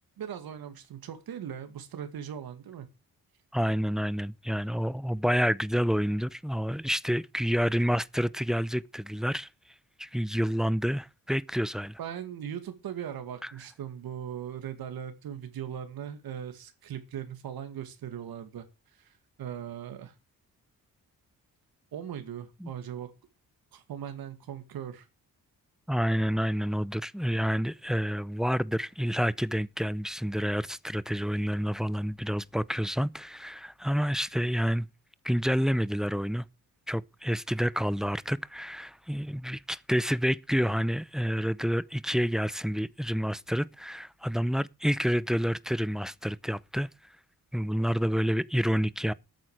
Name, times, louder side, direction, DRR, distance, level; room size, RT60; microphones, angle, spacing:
voice 1, 0.2-2.9 12.0-18.6 18.9-20.1 21.9-23.1 23.7-25.1, right 9 dB, 90° right, 2.2 m, -39 dB
voice 2, 3.5-9.5 10.0-12.0 13.4-13.5 22.6-22.7 25.9-34.9 35.2-36.5 36.9-46.9 47.5-49.1, equal, ahead, 0.7 m, -28 dB
13.5 x 9.1 x 4.9 m
cardioid pair, 95°, 35 cm